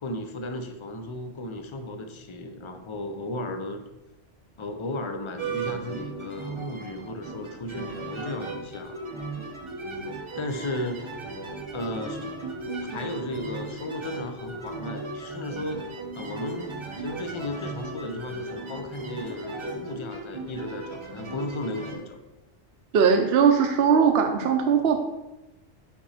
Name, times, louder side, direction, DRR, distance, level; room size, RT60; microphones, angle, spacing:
voice 1, 0.0-3.8 4.6-8.9 10.4-11.1 11.7-12.3 12.8-15.8 16.2-22.2, left 1 dB, 35° left, 6 dB, 0.5 m, -35 dB
sound 1, 5.4-22.0, right 3 dB, 30° right, 0.8 m, -36 dB
voice 2, 22.9-25.0, right 6 dB, 65° right, 4 dB, 0.8 m, -20 dB
6.0 x 4.9 x 4.2 m, 0.98 s
omnidirectional pair, 1.2 m